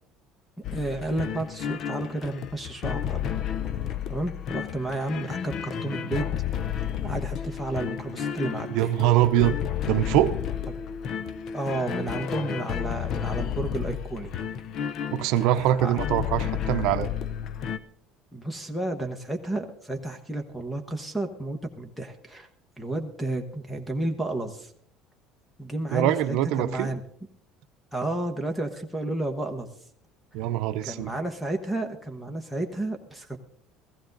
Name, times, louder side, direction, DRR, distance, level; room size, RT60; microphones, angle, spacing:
sound 1, 0.6-17.8, left 9 dB, 40° left, 0.6 m, -32 dB
voice 1, 0.7-3.2 4.1-6.3 7.0-8.9 11.5-14.3 15.8-16.0 18.3-22.5 22.8-24.7 25.6-27.0 27.9-29.7 30.8-33.4, right 2 dB, ahead, 8 dB, 1.0 m, -31 dB
voice 2, 8.7-9.5 9.9-10.4 15.1-17.1 25.9-26.9 30.3-31.2, right 13 dB, 70° right, 9 dB, 0.7 m, -23 dB
15.5 x 14.5 x 3.9 m, 0.62 s
cardioid pair, 165°, 0 cm